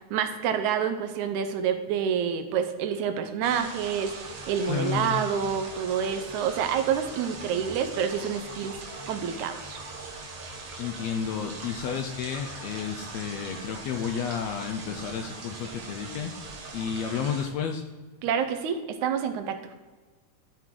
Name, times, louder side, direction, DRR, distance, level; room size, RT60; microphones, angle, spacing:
voice 1, 0.0-8.8 9.1-9.8 18.2-19.6, right 7 dB, 80° right, 8 dB, 2.0 m, -28 dB
Five Minutes of Rain (reverb), 3.4-17.5, right 3 dB, 55° right, 2.1 m, -41 dB
voice 2, 4.7-5.2 10.8-16.3 16.7-17.8, left 7 dB, 80° left, 5 dB, 1.6 m, -31 dB
12.5 x 4.7 x 3.8 m, 1.3 s
omnidirectional pair, 3.5 m